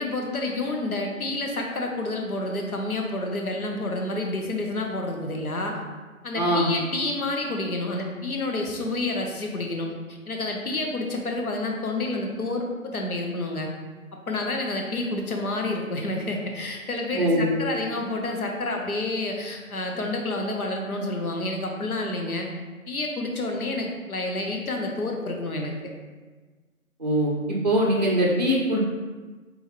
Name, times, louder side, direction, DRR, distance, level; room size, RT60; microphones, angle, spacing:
voice 1, 0.0-5.8 6.2-13.7 14.1-22.5 22.9-25.7, left 2 dB, 75° left, 2 dB, 1.0 m, -29 dB
voice 2, 6.3-6.7 17.1-17.5 27.0-28.8, equal, 30° right, -2 dB, 0.5 m, -22 dB
3.5 x 3.2 x 3.6 m, 1.3 s
figure-of-eight pair, 160°, 43 cm